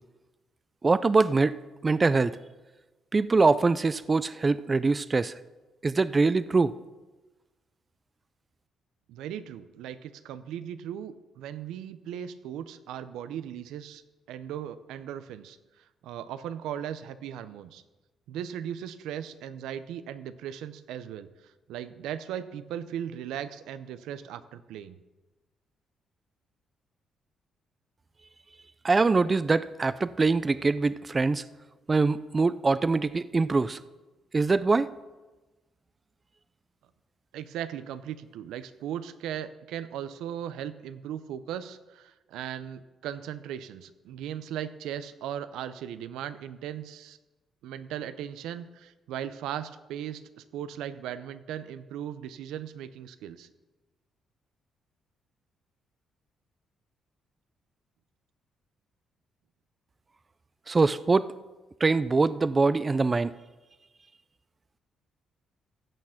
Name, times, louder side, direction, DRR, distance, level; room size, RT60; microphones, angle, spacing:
voice 1, 0.8-1.6 1.8-2.4 3.1-5.3 5.8-6.7 28.8-31.4 31.9-33.8 34.3-34.9 60.7-61.3 61.8-63.3, right 3 dB, 30° right, 16 dB, 0.4 m, -23 dB
voice 2, 9.1-14.0 14.3-15.6 16.0-17.8 18.3-25.0 37.3-47.2 47.6-53.5, right 10 dB, 90° right, 13 dB, 0.6 m, -38 dB
15.5 x 6.6 x 5.7 m, 1.2 s
cardioid pair, 90°, 0 cm